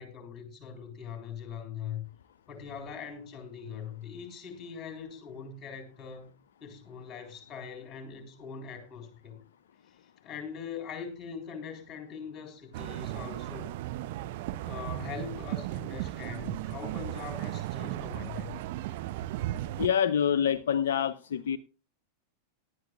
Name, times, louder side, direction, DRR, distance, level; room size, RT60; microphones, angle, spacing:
voice 1, 0.0-2.0 2.5-6.3 6.6-9.4 9.8-13.7 14.6-18.6, left 6 dB, 25° left, 4.0 m, -42 dB
sound 1, 12.7-19.9, right 15 dB, 50° right, 0.5 m, -36 dB
voice 2, 19.8-21.6, left 8 dB, 60° left, 0.5 m, -26 dB
18.5 x 11.5 x 2.3 m
figure-of-eight pair, 90°, 0 cm